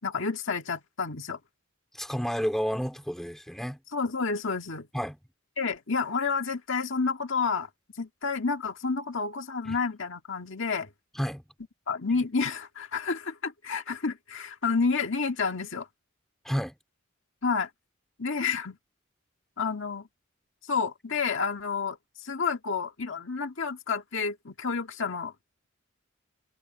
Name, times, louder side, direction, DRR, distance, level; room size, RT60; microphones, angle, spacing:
voice 1, 0.0-1.4 3.9-4.9 5.6-7.7 8.0-10.9 11.9-15.9 17.4-17.7 18.2-18.8 19.6-20.1 20.7-25.3, left 5 dB, 65° left, 1.9 m, -30 dB
voice 2, 1.9-3.8 4.9-5.2 9.7-9.8 11.2-11.4 16.4-16.7, equal, ahead, 2.6 m, -30 dB
head